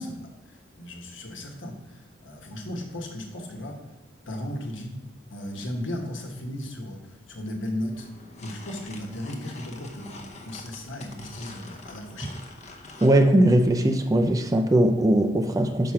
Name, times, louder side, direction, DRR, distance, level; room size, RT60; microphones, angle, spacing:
voice 1, 0.0-3.9 4.3-5.0 5.3-8.1 8.4-12.4, left 1 dB, 70° left, 2 dB, 1.2 m, -36 dB
sound 1, 7.9-13.2, left 2 dB, 35° left, 0.7 m, -45 dB
voice 2, 13.0-15.9, right 1 dB, 15° right, 5 dB, 0.4 m, -20 dB
5.9 x 5.7 x 4.7 m, 1.0 s
head